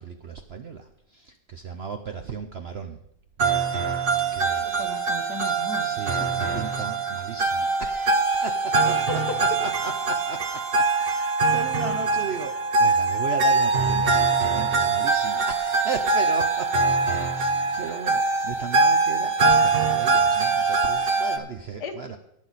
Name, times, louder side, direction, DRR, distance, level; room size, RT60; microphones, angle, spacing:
voice 1, 0.0-3.0 4.3-4.9 5.8-22.2, right 5 dB, 55° right, 5 dB, 0.7 m, -36 dB
sound 1, 3.4-21.4, right 3 dB, 40° right, 1.0 m, -23 dB
voice 2, 4.6-6.6 8.9-9.4 21.8-22.2, left 5 dB, 70° left, 6 dB, 1.7 m, -37 dB
18.5 x 6.4 x 4.1 m, 0.77 s
omnidirectional pair, 1.8 m